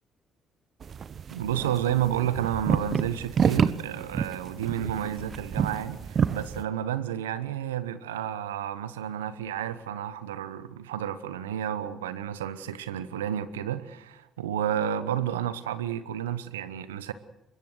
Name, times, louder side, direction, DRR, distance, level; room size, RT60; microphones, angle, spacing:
sound 1, 0.8-6.6, right 7 dB, 50° right, 0.9 m, -29 dB
voice 1, 1.3-17.1, right 10 dB, 90° right, 1.0 m, -31 dB
24.0 x 21.5 x 6.4 m
hypercardioid pair, 50°, 0 cm